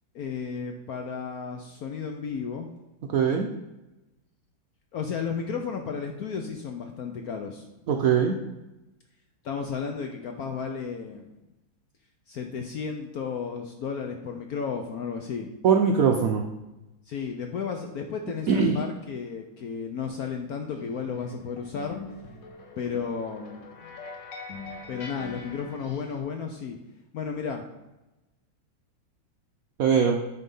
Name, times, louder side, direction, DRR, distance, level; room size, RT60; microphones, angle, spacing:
voice 1, 0.1-2.7 4.9-7.7 9.4-11.3 12.3-15.5 17.1-22.0 22.8-23.7 24.9-26.8 27.1-27.6, left 6 dB, 70° left, 4 dB, 0.9 m, -33 dB
voice 2, 3.1-3.5 7.9-8.4 15.6-16.4 18.5-18.8 29.8-30.2, right 6 dB, 75° right, 3 dB, 0.8 m, -21 dB
sound 1, 20.7-26.2, left 3 dB, 50° left, 1.4 m, -43 dB
9.5 x 3.5 x 5.3 m, 1.0 s
omnidirectional pair, 2.2 m